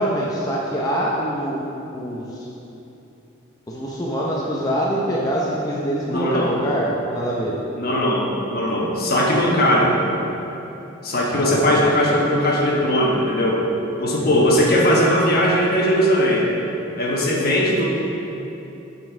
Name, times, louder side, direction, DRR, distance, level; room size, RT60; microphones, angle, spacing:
voice 1, 0.0-1.6 1.9-2.5 3.7-7.6 11.3-12.1 14.2-14.3, equal, 20° left, -5 dB, 0.6 m, -24 dB
voice 2, 6.1-6.6 7.8-9.9 11.0-13.6 14.0-16.5 17.0-17.9, equal, 50° left, -2 dB, 1.1 m, -19 dB
7.3 x 4.0 x 5.5 m, 2.9 s
head